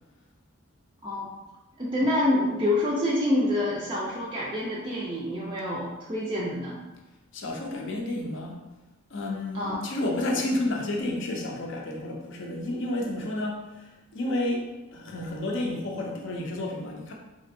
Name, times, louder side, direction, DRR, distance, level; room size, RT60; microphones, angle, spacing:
voice 1, 1.8-6.8 9.5-9.8, left 1 dB, 25° right, -5 dB, 0.4 m, -27 dB
voice 2, 7.3-8.6 9.1-17.1, left 1 dB, 60° left, 0 dB, 0.5 m, -31 dB
3.2 x 2.6 x 2.6 m, 1.1 s
head